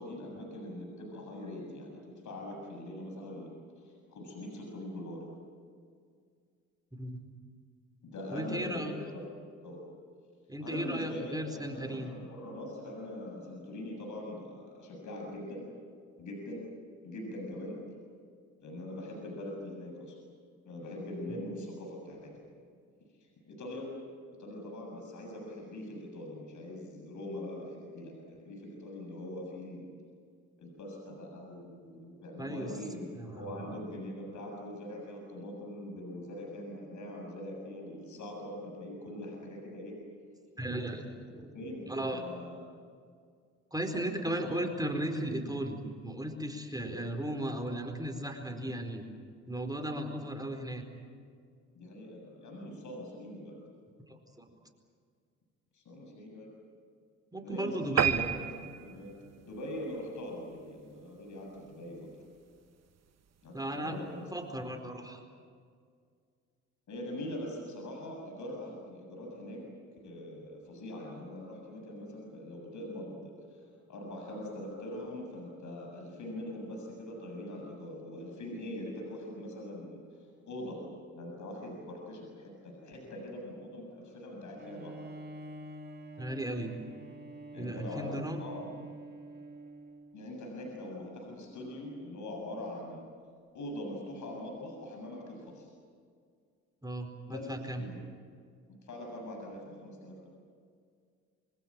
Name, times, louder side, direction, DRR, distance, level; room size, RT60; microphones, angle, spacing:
voice 1, 0.0-3.5 3.8-5.2 8.0-9.2 9.6-9.8 10.6-15.7 16.2-16.7 17.0-17.8 18.6-20.2 20.6-22.3 23.2-23.9 24.4-29.9 30.6-39.9 41.2-42.6 43.8-44.6 46.8-47.0 51.7-53.6 55.7-56.5 57.4-59.1 59.4-62.1 63.4-64.3 66.9-69.6 70.0-80.0 80.5-80.8 81.1-85.0 87.5-88.9 90.1-93.0 93.5-95.7 97.3-98.0 98.8-100.2, left 1 dB, 55° left, 1 dB, 7.4 m, -42 dB
voice 2, 8.3-8.9 10.5-12.1 32.4-32.7 33.1-33.7 40.6-41.0 41.4-41.5 41.9-42.2 43.7-49.0 49.5-50.8 54.1-54.5 57.3-58.2 63.5-65.2 86.2-86.7 87.5-88.4 96.8-97.8, right 1 dB, 10° right, 4 dB, 4.4 m, -36 dB
sound 1, 58.0-60.7 61.2-61.4 61.8-61.9 62.2-62.3 62.6-62.7, right 7 dB, 45° right, 1.6 m, -32 dB
Bowed string instrument, 84.6-90.2, right 2 dB, 25° right, 2.5 m, -47 dB
25.5 x 24.5 x 7.6 m, 2.1 s
hypercardioid pair, 55°, 35 cm